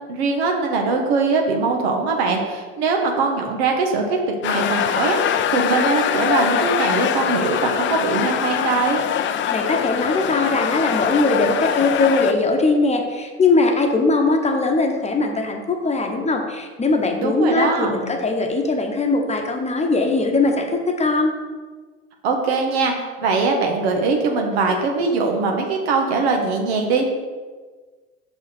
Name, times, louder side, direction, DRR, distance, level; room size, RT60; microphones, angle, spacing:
voice 1, 0.1-9.0 17.2-17.9 22.2-27.0, right 4 dB, 80° right, 2 dB, 1.2 m, -21 dB
sound 1, 4.4-12.3, left 9 dB, 40° left, 0.5 m, -23 dB
voice 2, 9.5-21.4, left 3 dB, 20° left, 3 dB, 0.9 m, -20 dB
5.8 x 4.9 x 4.2 m, 1.4 s
hypercardioid pair, 85°, 31 cm